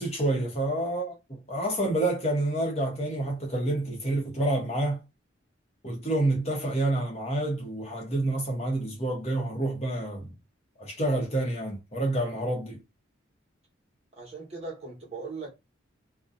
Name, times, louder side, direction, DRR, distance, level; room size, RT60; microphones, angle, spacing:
voice 1, 0.0-5.0 5.8-10.3 10.8-12.8, right 1 dB, 30° left, 0.9 m, -28 dB
voice 2, 14.2-15.5, right 3 dB, 30° right, 1.1 m, -39 dB
2.6 x 2.2 x 2.5 m
head